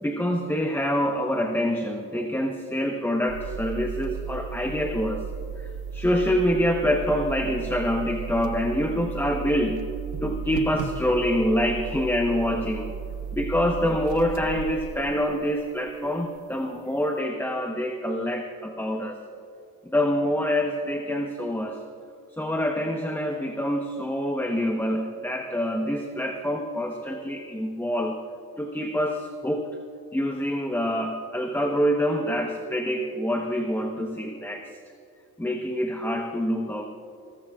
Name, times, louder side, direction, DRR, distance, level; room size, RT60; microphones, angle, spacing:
voice 1, 0.0-5.2 5.6-5.7 5.9-9.8 10.2-12.9 13.3-19.2 19.9-21.8 22.4-28.2 28.6-29.7 30.1-34.7 35.4-36.9, equal, 5° left, 3 dB, 1.1 m, -26 dB
sound 1, 3.3-15.9, right 6 dB, 85° right, 1.1 m, -35 dB
25.0 x 14.5 x 2.5 m, 2.6 s
cardioid pair, 80°, 35 cm